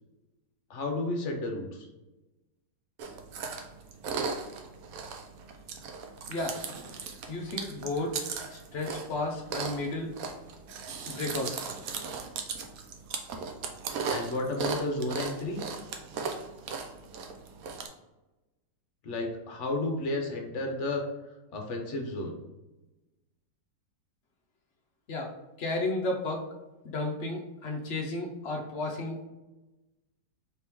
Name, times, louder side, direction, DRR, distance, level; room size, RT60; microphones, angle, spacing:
voice 1, 0.7-1.9 14.1-15.6 19.0-21.0 21.5-22.3, left 2 dB, 50° left, 2 dB, 0.9 m, -32 dB
Chewing mastication, 3.0-17.9, right 5 dB, 65° right, 0.9 m, -37 dB
voice 2, 6.3-6.7 7.3-10.1 11.1-11.5 25.1-25.3 25.6-26.4 26.8-29.3, left 2 dB, 70° left, 0 dB, 0.6 m, -33 dB
4.4 x 3.0 x 3.5 m, 1.0 s
omnidirectional pair, 2.0 m